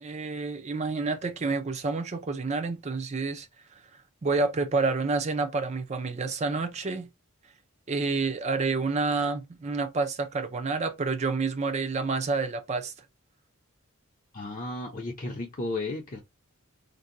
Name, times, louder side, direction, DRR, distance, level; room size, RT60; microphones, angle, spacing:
voice 1, 0.0-3.5 4.2-7.1 7.9-12.9, right 3 dB, 30° right, 0.5 m, -28 dB
voice 2, 14.3-16.2, left 2 dB, 35° left, 0.6 m, -34 dB
2.6 x 2.2 x 3.8 m
head